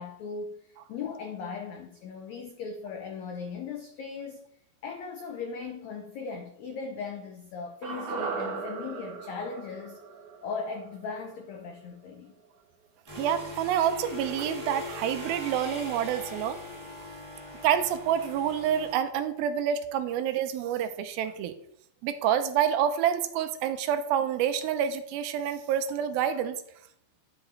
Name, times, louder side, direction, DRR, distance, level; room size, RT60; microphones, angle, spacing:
voice 1, 0.0-4.4 4.8-10.0 10.4-12.4, left 5 dB, 85° left, 3 dB, 1.5 m, -38 dB
sound 1, 7.8-12.1 12.4-12.5, right 5 dB, 65° right, 2.2 m, -38 dB
sound 2, 13.1-18.9, left 1 dB, 25° right, 2.1 m, -40 dB
voice 2, 13.2-16.6 17.6-21.5 22.0-26.6, right 9 dB, 80° right, 10 dB, 2.4 m, -28 dB
10.5 x 4.9 x 3.9 m, 0.70 s
omnidirectional pair, 4.3 m